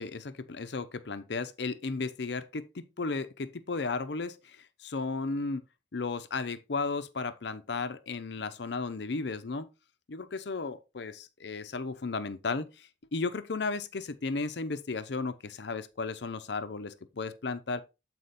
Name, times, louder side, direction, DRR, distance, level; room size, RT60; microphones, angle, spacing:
voice 1, 0.0-5.6 5.9-9.7 10.1-17.8, left 4 dB, 70° left, 0.6 m, -34 dB
8.1 x 4.3 x 4.1 m
head